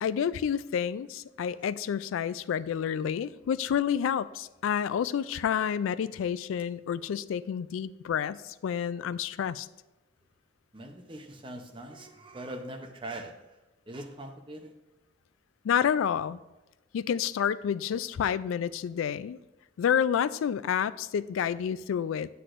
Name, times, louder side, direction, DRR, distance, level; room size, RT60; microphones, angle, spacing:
voice 1, 0.0-9.7 15.6-16.4 16.9-19.4 19.8-22.3, left 8 dB, 90° left, 17 dB, 0.3 m, -29 dB
voice 2, 10.7-13.3 13.9-14.7, right 1 dB, 25° right, 4 dB, 0.7 m, -41 dB
8.2 x 7.8 x 2.5 m, 1.1 s
head